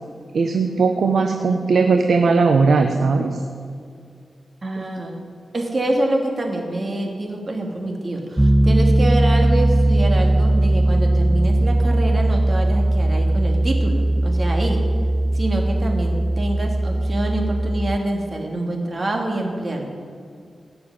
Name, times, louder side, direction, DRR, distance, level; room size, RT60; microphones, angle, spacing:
voice 1, 0.3-3.4 4.8-4.9, right 4 dB, 75° right, 5 dB, 0.9 m, -18 dB
voice 2, 4.6-5.1 5.5-14.8 15.3-19.8, right 1 dB, 40° right, 1 dB, 2.7 m, -26 dB
Piano, 8.4-18.0, right 1 dB, 10° right, 0.3 m, -18 dB
17.0 x 6.8 x 9.7 m, 2.3 s
wide cardioid pair, 95°, 0 cm